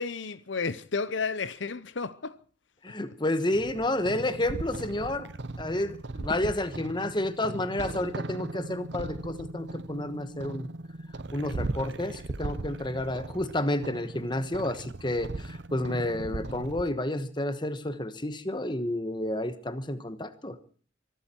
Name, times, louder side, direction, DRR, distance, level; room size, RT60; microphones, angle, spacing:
voice 1, 0.0-2.3, left 4 dB, 70° left, 0.8 m, -32 dB
voice 2, 2.8-5.3 5.6-10.7 11.3-20.6, left 1 dB, 25° left, 1.2 m, -30 dB
sound 1, 3.5-16.9, right 2 dB, 60° right, 0.7 m, -38 dB
24.5 x 13.0 x 4.5 m
head